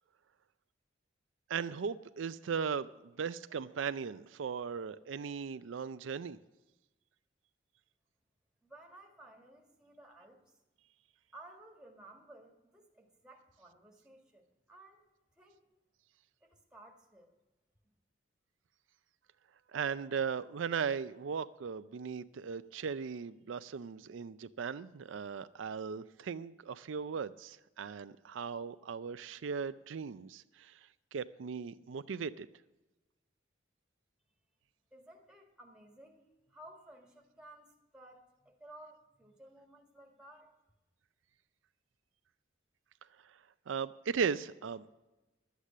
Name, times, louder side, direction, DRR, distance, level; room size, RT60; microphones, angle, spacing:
voice 1, 1.5-6.4 19.7-30.8 31.1-32.5 43.7-45.0, right 6 dB, 85° right, 13 dB, 0.4 m, -37 dB
voice 2, 8.6-10.5 11.3-15.0 15.4-15.7 16.4-17.3 34.9-40.6, right 1 dB, 5° right, 1 dB, 1.8 m, -56 dB
11.5 x 8.2 x 7.4 m, 1.0 s
head